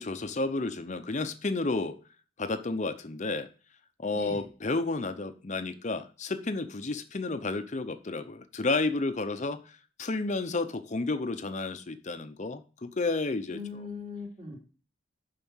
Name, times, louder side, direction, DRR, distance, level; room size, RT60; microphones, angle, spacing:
voice 1, 0.0-2.0 2.4-3.5 4.0-13.6, left 3 dB, 35° left, 10 dB, 0.6 m, -31 dB
voice 2, 4.1-4.4 13.5-14.6, left 4 dB, 30° right, -2 dB, 3.2 m, -40 dB
7.2 x 5.6 x 7.1 m, 0.38 s
head